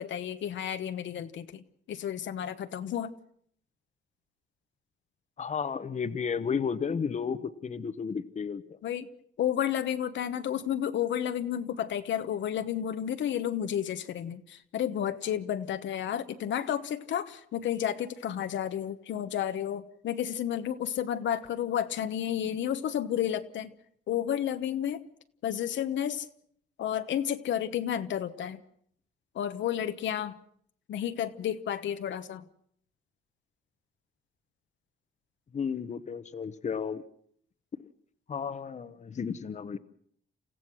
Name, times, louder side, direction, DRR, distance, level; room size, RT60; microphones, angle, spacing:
voice 1, 0.0-3.1 8.8-9.1 9.4-23.7 24.1-25.0 25.4-26.3 26.8-28.6 29.3-30.3 30.9-32.4, left 10 dB, 70° left, 9 dB, 1.1 m, -31 dB
voice 2, 5.4-8.8 35.5-37.0 38.3-39.8, left 6 dB, 35° left, 11 dB, 1.0 m, -33 dB
29.0 x 15.0 x 6.3 m, 0.65 s
cardioid pair, 90°, 20 cm